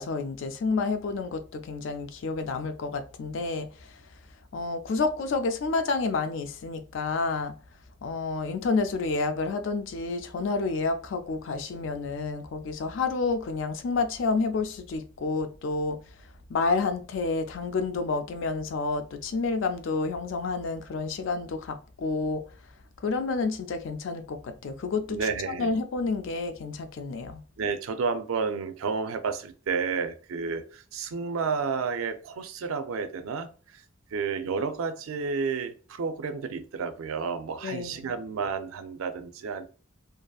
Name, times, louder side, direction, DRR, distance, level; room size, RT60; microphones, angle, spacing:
voice 1, 0.0-3.7 4.5-7.5 8.0-16.0 16.5-22.4 23.0-25.2 25.6-27.4 37.6-38.1, left 4 dB, 65° left, 0.4 m, -29 dB
voice 2, 25.1-25.7 27.6-33.8 34.1-39.7, right 5 dB, 80° right, 0.4 m, -31 dB
2.7 x 2.5 x 2.3 m
head